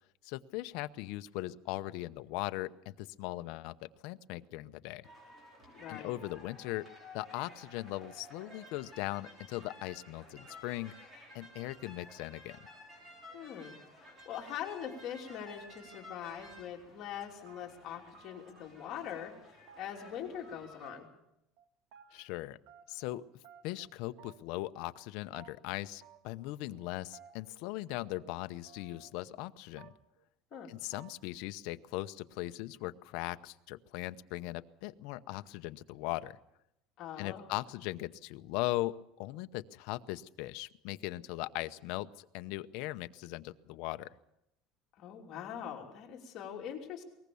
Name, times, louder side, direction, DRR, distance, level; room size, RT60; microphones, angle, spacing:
voice 1, 0.2-5.1 5.9-6.8 7.1-10.9 11.3-12.6 22.1-22.6 22.9-23.2 23.6-29.9 30.7-36.4 37.2-44.1, left 17 dB, 65° left, 11 dB, 0.8 m, -39 dB
sound 1, 5.0-20.9, left 2 dB, 20° right, 5.8 m, -54 dB
voice 2, 5.7-6.1 13.3-21.1 30.5-30.7 37.0-37.5 45.0-47.0, left 9 dB, 40° left, 1 dB, 3.0 m, -43 dB
sound 2, 14.0-14.1 14.4-15.6 15.9-16.8 17.1-18.6 18.9-19.4 19.7-20.5 20.8-21.3 21.6-22.3 22.7-23.2 23.4-23.9 24.2-24.6 24.9-25.0 25.3-25.5 26.0-26.5 26.8-28.4 28.7-29.5 29.8-30.2 30.5-30.7 30.9-31.4, right 8 dB, 65° right, 2.1 m, -58 dB
21.5 x 19.5 x 7.0 m, 0.83 s
cardioid pair, 165°, 0 cm